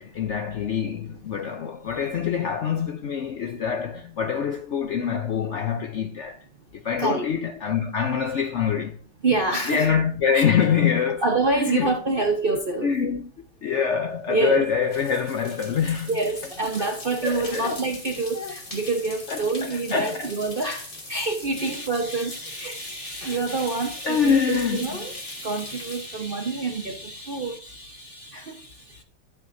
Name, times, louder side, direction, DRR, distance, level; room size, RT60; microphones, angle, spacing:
voice 1, 0.0-6.4 6.7-9.0 9.7-11.2 11.7-11.9 12.8-13.3 13.6-16.1 16.8-16.9 17.2-17.8 18.4-18.5 19.3-20.3 21.2-29.0, left 7 dB, 75° left, 0.6 m, -26 dB
voice 2, 9.2-9.9 10.3-10.4 11.2-12.9 14.3-14.6 16.1-22.8 23.2-25.1 25.4-27.0 27.3-27.6 28.3-28.5, right 3 dB, 40° right, 0.9 m, -26 dB
sound 1, 14.1-27.3, left 2 dB, 30° left, 1.8 m, -41 dB
11.5 x 7.1 x 2.6 m
omnidirectional pair, 1.9 m